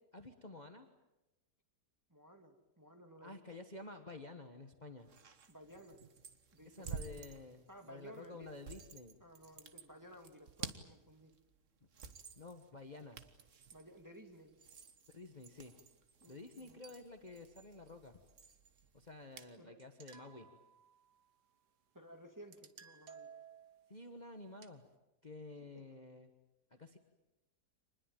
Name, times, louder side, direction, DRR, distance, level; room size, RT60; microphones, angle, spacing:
voice 1, 0.1-0.9 3.2-5.1 6.6-9.2 12.4-13.2 15.1-15.7 16.3-18.2 18.9-20.5 23.9-24.8 25.2-26.3 26.7-27.0, left 2 dB, 30° left, 6 dB, 1.4 m, -51 dB
voice 2, 2.1-3.4 5.5-6.0 6.5-7.3 7.7-8.5 9.2-11.3 13.7-14.6 16.2-16.8 19.6-19.8 21.9-23.3 25.7-25.8, equal, 10° right, 4 dB, 2.1 m, -56 dB
sound 1, 5.0-19.6, right 6 dB, 50° right, 1.6 m, -53 dB
sound 2, 19.8-21.3 22.5-24.0 24.6-24.7, right 7 dB, 85° right, 1.9 m, -57 dB
26.0 x 20.5 x 9.1 m, 0.99 s
omnidirectional pair, 1.7 m